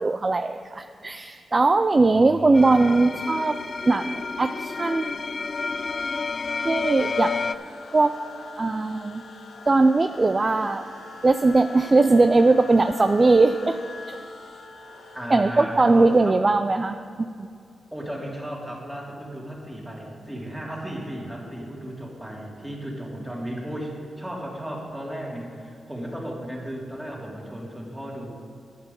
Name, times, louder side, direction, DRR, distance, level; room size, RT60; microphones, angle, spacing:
voice 1, 0.0-3.6 3.9-5.2 6.6-7.4 7.9-8.1 8.6-9.2 9.7-10.8 11.2-13.8 15.3-17.0 17.4-17.5, right 3 dB, 30° right, 8 dB, 0.4 m, -20 dB
voice 2, 1.9-2.9 15.1-16.4 17.9-23.9 24.2-28.3, equal, 10° right, -3 dB, 2.7 m, -35 dB
sound 1, 2.5-7.5, left 4 dB, 45° left, 0.4 m, -30 dB
sound 2, 7.0-16.2, left 3 dB, 75° left, 1.2 m, -43 dB
9.7 x 8.3 x 5.4 m, 2.4 s
cardioid pair, 75°, 0 cm